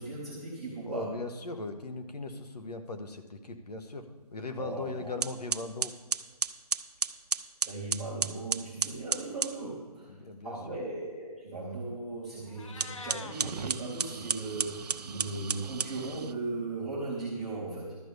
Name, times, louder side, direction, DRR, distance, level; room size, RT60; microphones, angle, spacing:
voice 1, 0.0-1.2 4.6-5.1 7.6-10.2 10.4-18.0, right 2 dB, ahead, -12 dB, 0.5 m, -37 dB
voice 2, 0.9-5.9 10.1-10.8, left 3 dB, 85° left, 6 dB, 1.5 m, -39 dB
sound 1, 4.7-4.8 5.2-9.6 12.7-16.4, right 6 dB, 90° right, 0.6 m, -33 dB
Meow, 12.4-13.3, left 4 dB, 50° left, 0.8 m, -44 dB
12.0 x 5.3 x 8.1 m, 1.4 s
hypercardioid pair, 170°, 20 cm